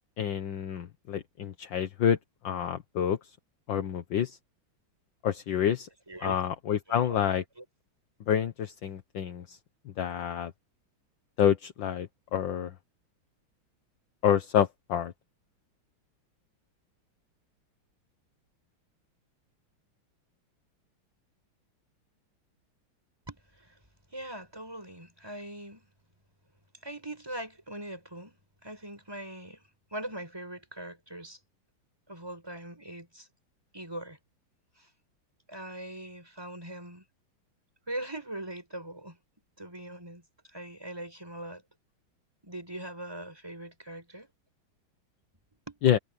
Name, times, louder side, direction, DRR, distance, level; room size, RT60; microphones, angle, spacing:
voice 1, 0.2-2.2 2.4-3.2 3.7-4.4 5.2-5.9 6.2-7.4 8.3-9.6 10.0-10.5 11.4-12.7 14.2-15.1 45.8-46.0, left 9 dB, 65° left, 1.8 m, -28 dB
voice 2, 6.1-6.4 6.9-7.1 7.6-7.7 23.3-23.8 24.1-25.9 26.8-29.6 29.9-31.4 32.1-33.3 33.7-34.2 34.8-34.9 35.5-37.0 37.9-39.2 39.6-40.2 40.5-41.6 42.4-44.3 45.7-45.8, right 1 dB, 10° right, 6.6 m, -41 dB
omnidirectional pair, 2.2 m